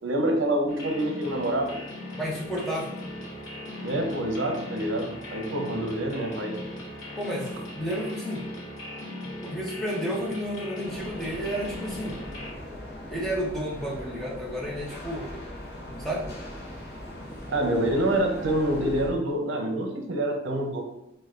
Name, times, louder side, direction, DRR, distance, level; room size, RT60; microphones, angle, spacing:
voice 1, 0.0-1.8 3.8-6.7 17.5-20.8, right 1 dB, 75° right, 2 dB, 0.7 m, -27 dB
sound 1, 0.7-12.5, left 1 dB, 85° left, 1.0 m, -38 dB
voice 2, 2.2-2.9 7.2-8.5 9.4-12.2 13.1-15.3 16.0-16.3, equal, ahead, -5 dB, 0.7 m, -31 dB
sound 2, 10.8-19.1, left 1 dB, 55° left, 0.7 m, -40 dB
6.3 x 2.2 x 2.5 m, 0.85 s
head